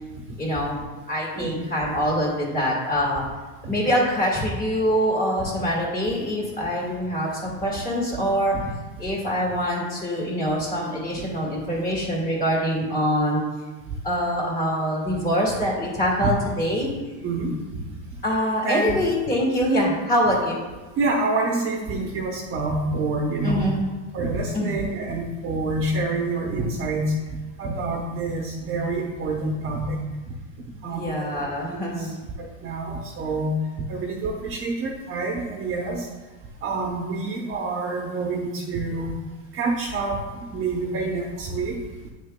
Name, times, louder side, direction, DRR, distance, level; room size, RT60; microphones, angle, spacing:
voice 1, 0.4-0.8 1.1-3.2 3.7-8.6 9.0-13.4 14.0-16.9 18.2-20.6 23.4-23.9 24.5-24.8 30.8-32.2, equal, 20° left, -3 dB, 2.0 m, -24 dB
voice 2, 11.0-11.3 16.2-16.3 17.2-17.6 18.1-18.2 18.6-19.1 21.0-23.7 24.1-27.1 27.6-30.0 30.8-33.6 33.9-36.1 36.6-39.1 39.5-41.8, right 2 dB, 30° right, -1 dB, 0.9 m, -27 dB
9.7 x 6.6 x 2.2 m, 1.2 s
supercardioid pair, 145°, 42 cm